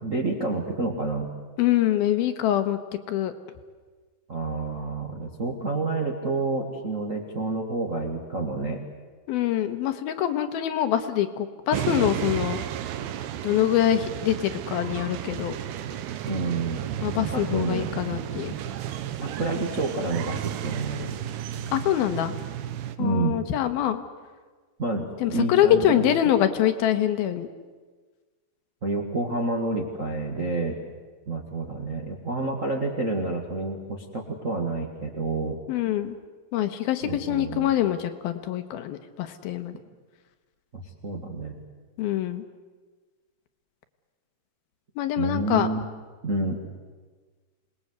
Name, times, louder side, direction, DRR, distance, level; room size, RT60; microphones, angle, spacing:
voice 1, 0.0-1.3 4.3-8.8 16.2-16.8 17.3-17.9 19.2-21.1 23.0-23.4 24.8-26.1 28.8-30.8 31.3-35.6 37.0-37.7 40.7-41.6 45.2-45.8 46.2-46.6, right 3 dB, 40° right, 0 dB, 1.2 m, -29 dB
voice 2, 1.6-2.8 3.1-3.3 9.3-12.6 13.4-15.6 17.0-18.6 21.7-22.3 23.0-24.0 25.2-27.5 35.7-36.2 36.5-39.7 42.0-42.4 45.0-45.7, left 11 dB, 75° left, 8 dB, 2.9 m, -24 dB
sound 1, 11.7-23.0, right 11 dB, 85° right, 3.1 m, -33 dB
27.0 x 20.0 x 8.0 m, 1.4 s
omnidirectional pair, 4.5 m